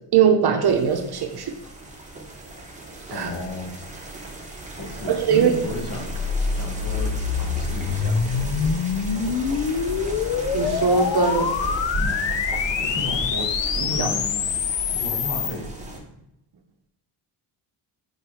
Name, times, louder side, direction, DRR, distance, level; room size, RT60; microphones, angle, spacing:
voice 1, 0.1-1.5 3.1-3.3 5.1-5.5 10.5-11.5 13.8-14.1, right 7 dB, 50° right, 5 dB, 0.9 m, -20 dB
sound 1, 0.6-16.0, right 1 dB, 15° right, 1.2 m, -34 dB
voice 2, 3.1-3.8 4.8-6.2 6.5-8.8 12.9-13.5 13.9-14.5 14.9-16.0, left 2 dB, 45° left, 1 dB, 1.7 m, -34 dB
sound 2, 5.6-15.5, left 6 dB, 60° left, 0.7 m, -25 dB
4.7 x 4.7 x 4.8 m, 0.82 s
cardioid pair, 105°, 48 cm